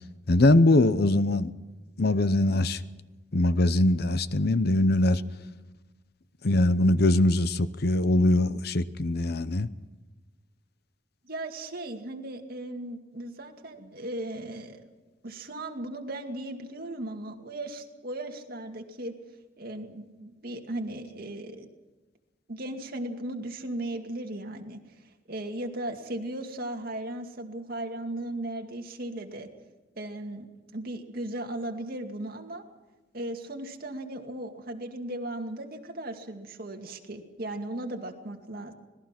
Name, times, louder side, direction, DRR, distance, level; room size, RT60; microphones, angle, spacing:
voice 1, 0.3-1.5 2.0-2.8 3.3-5.2 6.4-9.7, left 1 dB, 60° left, 14 dB, 0.8 m, -22 dB
voice 2, 11.2-14.9 15.2-19.1 19.6-21.7 22.5-24.8 25.3-29.5 30.0-32.6 33.1-38.7, right 1 dB, 55° right, 3 dB, 2.3 m, -37 dB
26.0 x 18.5 x 6.0 m, 1.2 s
head